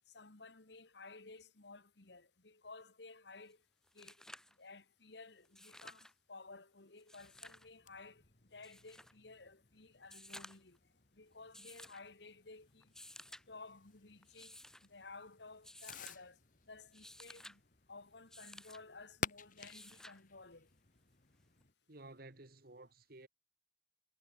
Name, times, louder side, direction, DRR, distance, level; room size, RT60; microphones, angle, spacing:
voice 1, 0.1-3.6 3.9-4.2 4.6-8.2 8.5-10.8 11.1-12.9 13.5-16.4 16.7-17.6 17.9-20.7, left 3 dB, 65° left, 1.8 m, -55 dB
sound 1, 3.5-3.6 3.8-4.6 5.4-6.1 7.0-7.7 8.6-9.1 10.0-10.8 11.5-12.0 12.8-13.4 14.2-14.9 15.6-16.2 16.8-17.6 18.3-18.8 19.6-20.2 21.6-21.7, left 1 dB, 5° left, 4.5 m, -54 dB
Fireworks, 7.1-21.7, left 5 dB, 45° left, 2.3 m, -53 dB
voice 2, 21.9-23.3, right 2 dB, 55° right, 1.9 m, -54 dB
head